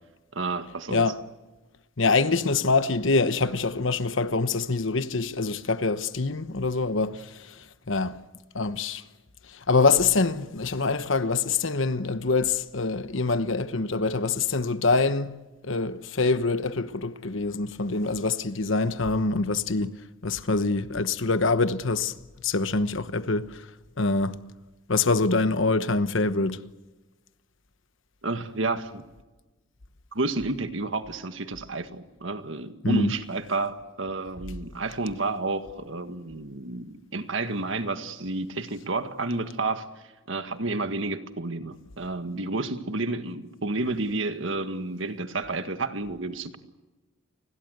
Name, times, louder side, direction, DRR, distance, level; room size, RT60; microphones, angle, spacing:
voice 1, 0.3-1.0 28.2-29.0 30.1-39.9 40.3-46.6, right 2 dB, 65° right, 1.7 m, -30 dB
voice 2, 0.9-1.2 2.0-8.2 8.5-9.0 9.5-15.3 15.6-19.9 20.2-22.1 22.4-23.7 24.0-24.4 24.9-26.6 32.8-33.1, left 3 dB, 65° left, 1.1 m, -25 dB
29.5 x 21.0 x 8.1 m
head